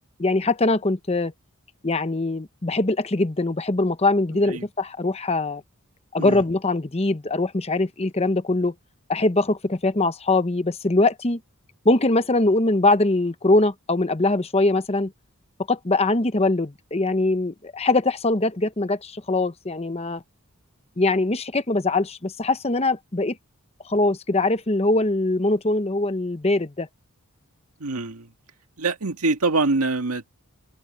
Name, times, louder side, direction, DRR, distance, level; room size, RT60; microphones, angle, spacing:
voice 1, 0.2-1.3 1.8-5.6 6.1-8.7 9.1-11.4 11.8-15.1 15.7-20.2 21.0-23.4 23.9-26.9, left 2 dB, 30° left, 0.9 m, -22 dB
voice 2, 27.8-28.3 28.8-30.3, right 3 dB, 85° right, 1.8 m, -24 dB
head